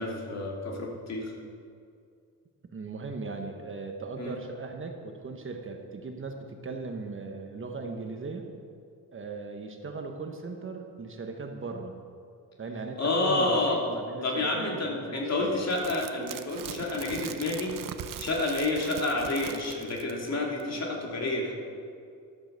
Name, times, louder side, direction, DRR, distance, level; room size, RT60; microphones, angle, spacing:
voice 1, 0.0-1.3 4.2-4.4 13.0-13.8 14.2-17.7 18.2-21.5, left 2 dB, 45° left, -1 dB, 2.7 m, -29 dB
voice 2, 2.7-8.5 9.1-12.0 12.6-15.6, right 3 dB, 35° right, 4 dB, 1.2 m, -38 dB
sound 1, 15.7-20.3 20.6-20.7, right 10 dB, 70° right, 0.7 m, -41 dB
12.0 x 8.7 x 6.8 m, 2.3 s
cardioid pair, 110°, 35 cm